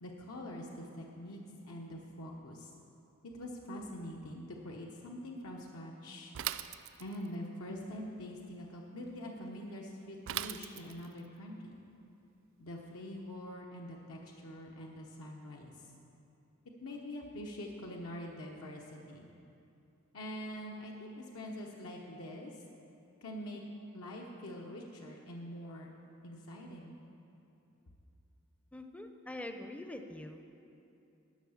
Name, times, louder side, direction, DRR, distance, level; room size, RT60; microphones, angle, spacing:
voice 1, 0.0-2.7 3.3-6.3 7.0-11.8 12.6-15.7 16.8-19.3 20.1-22.5 23.2-23.6 23.9-25.9 26.2-27.0, left 1 dB, 85° left, -1 dB, 0.9 m, -44 dB
Bicycle / Mechanisms, 6.3-7.3 10.3-11.2, right 12 dB, 60° right, 0.3 m, -39 dB
voice 2, 28.7-30.4, left 1 dB, 5° left, 6 dB, 0.4 m, -44 dB
11.5 x 6.3 x 7.0 m, 2.8 s
head